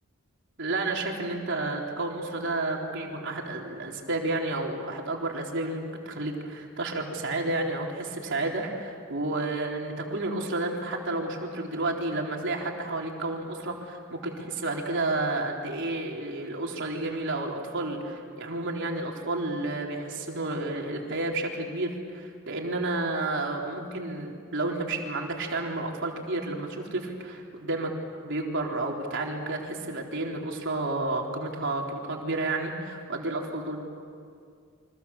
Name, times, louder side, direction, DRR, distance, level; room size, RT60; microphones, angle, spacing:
voice 1, 0.6-28.0 28.2-33.8, right 2 dB, 60° right, 0 dB, 3.9 m, -31 dB
29.5 x 25.0 x 7.3 m, 2.3 s
head